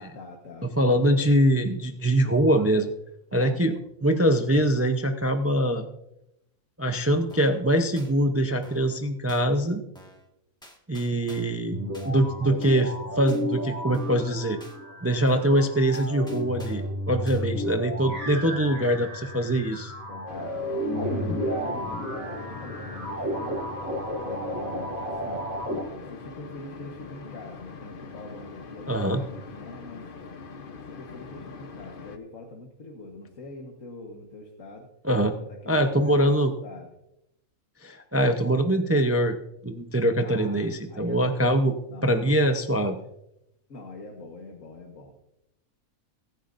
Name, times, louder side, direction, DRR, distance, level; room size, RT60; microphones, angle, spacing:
voice 1, 0.0-0.7 3.3-3.8 11.1-11.4 17.1-17.9 20.1-23.6 24.2-25.4 26.0-30.1 30.9-34.9 35.4-36.3 36.6-36.9 40.2-42.3 43.7-45.2, left 2 dB, 70° left, 0 dB, 1.8 m, -44 dB
voice 2, 0.6-2.9 3.3-5.8 6.8-9.8 10.9-11.8 12.0-14.6 15.0-19.9 28.9-29.2 35.0-35.4 35.7-36.5 37.8-39.4 39.6-41.7 42.0-43.0, right 1 dB, 15° right, 6 dB, 0.5 m, -23 dB
sound 1, 7.3-7.6 8.0-8.1 8.6-8.9 9.3-9.4 9.9-10.3 10.6-11.6 11.9-12.1 12.6-12.9 13.3-13.4 13.9-14.3 14.6-14.8 15.3-15.6 15.9-16.9 17.3-17.4, equal, 5° left, 1.6 m, -50 dB
sound 2, 11.7-25.8, equal, 85° right, 6.1 m, -32 dB
sound 3, 20.3-32.2, left 4 dB, 45° left, 1.0 m, -43 dB
23.0 x 10.0 x 2.6 m, 0.83 s
omnidirectional pair, 1.4 m